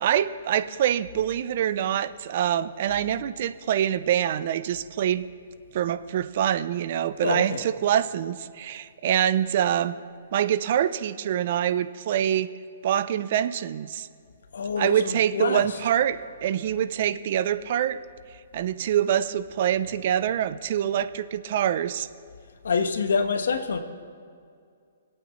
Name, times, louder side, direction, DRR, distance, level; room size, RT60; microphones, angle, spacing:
voice 1, 0.0-5.2 5.7-10.0 10.3-12.5 12.8-14.1 14.8-18.0 18.5-22.1, right 10 dB, 45° right, 13 dB, 0.5 m, -25 dB
voice 2, 7.2-7.6 14.5-15.8 22.6-23.8, left 5 dB, 80° left, 7 dB, 1.2 m, -26 dB
25.5 x 8.7 x 3.1 m, 2.3 s
hypercardioid pair, 160°, 0 cm